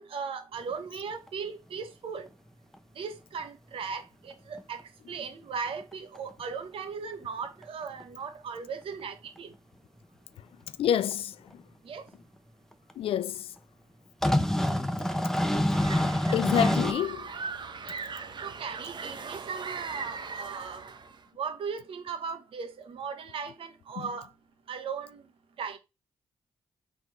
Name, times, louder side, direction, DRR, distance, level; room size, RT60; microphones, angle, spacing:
voice 1, 0.0-2.3 2.9-9.5 11.8-12.0 14.9-15.1 15.5-15.6 18.4-20.9 21.4-24.3 24.7-25.2 25.6-25.8, right 5 dB, 65° right, 1.1 m, -37 dB
sound 1, 0.7-0.8 1.3-1.4 4.3-4.4 4.6-4.7 5.8-6.2 7.6-7.7 8.0-8.1 9.4-9.5 11.1-11.2 12.1-12.2 12.7-12.9 14.2-16.9, left 1 dB, 5° left, 0.8 m, -26 dB
voice 2, 10.8-11.6 13.0-13.5 16.3-17.4 24.0-24.1, left 10 dB, 65° left, 0.4 m, -28 dB
sound 2, 15.7-21.2, right 5 dB, 50° right, 0.8 m, -39 dB
4.0 x 3.7 x 3.0 m
hypercardioid pair, 45°, 10 cm